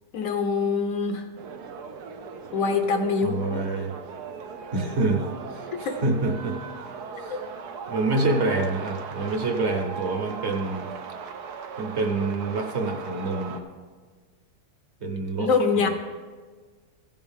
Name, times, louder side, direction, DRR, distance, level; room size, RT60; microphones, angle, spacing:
voice 1, 0.1-1.3 2.5-3.6 5.8-6.0 7.3-7.4 15.4-15.9, left 4 dB, 65° left, 6 dB, 1.1 m, -24 dB
sound 1, 1.4-13.6, right 6 dB, 80° right, 1.3 m, -38 dB
voice 2, 3.2-3.9 4.7-6.6 7.2-7.4 7.9-10.9 11.8-13.6 15.0-15.5 15.8-15.9, right 3 dB, 50° right, 4 dB, 1.1 m, -27 dB
15.5 x 7.2 x 3.5 m, 1.4 s
omnidirectional pair, 1.7 m